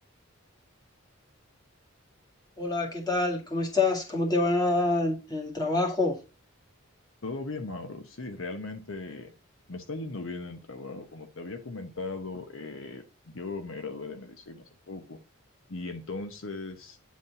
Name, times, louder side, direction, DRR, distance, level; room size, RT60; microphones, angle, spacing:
voice 1, 2.6-6.1, left 2 dB, 20° left, -1 dB, 2.0 m, -26 dB
voice 2, 7.2-9.3 9.7-15.2 15.7-17.0, left 3 dB, 70° left, 6 dB, 1.0 m, -38 dB
9.4 x 4.2 x 4.0 m, 0.32 s
head